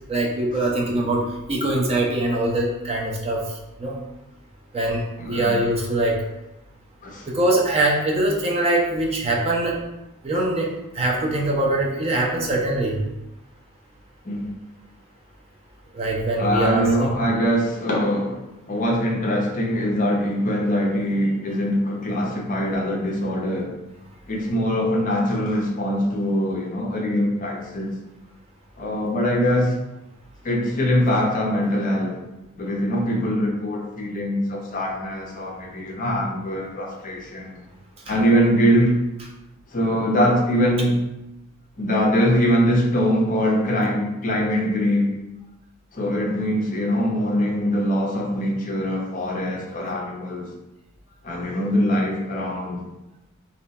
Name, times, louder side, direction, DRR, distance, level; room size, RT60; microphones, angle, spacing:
voice 1, 0.1-4.0 4.7-6.2 7.3-9.8 10.2-13.0 15.9-17.2, right 1 dB, 30° right, -1 dB, 0.5 m, -23 dB
voice 2, 5.2-5.6 7.0-7.3 14.2-14.4 16.4-23.7 24.3-28.0 28.8-29.7 30.4-32.2 32.6-37.6 38.1-39.1 39.7-41.0 41.8-45.1 45.9-50.5 51.2-52.8, equal, 40° left, -1 dB, 0.6 m, -22 dB
2.7 x 2.2 x 3.9 m, 0.94 s
head